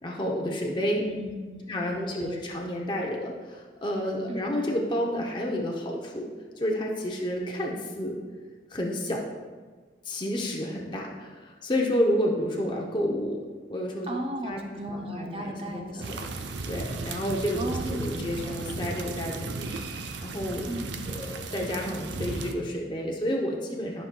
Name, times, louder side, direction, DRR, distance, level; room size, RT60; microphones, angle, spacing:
voice 1, 0.0-1.1 1.7-6.3 6.6-8.2 8.7-9.3 10.0-13.4 13.7-14.2 14.4-14.6 14.9-16.2 16.6-19.7 20.2-20.7 21.1-24.0, equal, 25° left, -1 dB, 0.6 m, -30 dB
voice 2, 0.9-2.4 4.3-4.4 14.1-16.2 17.5-18.6 18.9-19.1 20.7-21.3, right 1 dB, 30° right, 2 dB, 0.6 m, -36 dB
sound 1, 16.0-22.5, right 3 dB, 80° right, 0.6 m, -35 dB
11.5 x 5.6 x 2.2 m, 1.4 s
head